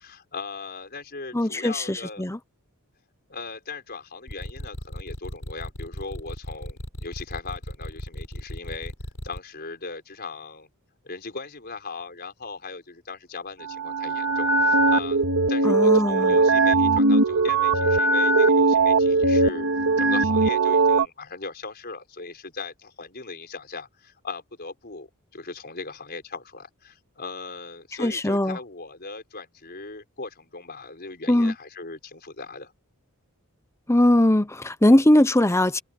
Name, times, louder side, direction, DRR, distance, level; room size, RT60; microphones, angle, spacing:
voice 1, 0.0-2.3 3.3-8.9 9.2-10.7 11.0-19.7 20.0-32.7, left 4 dB, 45° left, 4.9 m, -38 dB
voice 2, 1.3-2.4 15.6-16.4 28.0-28.6 31.3-31.5 33.9-35.8, left 1 dB, 10° left, 0.9 m, -20 dB
sound 1, 4.3-9.4, equal, 80° left, 7.1 m, -36 dB
sound 2, 13.6-21.1, right 3 dB, 90° right, 2.3 m, -20 dB
head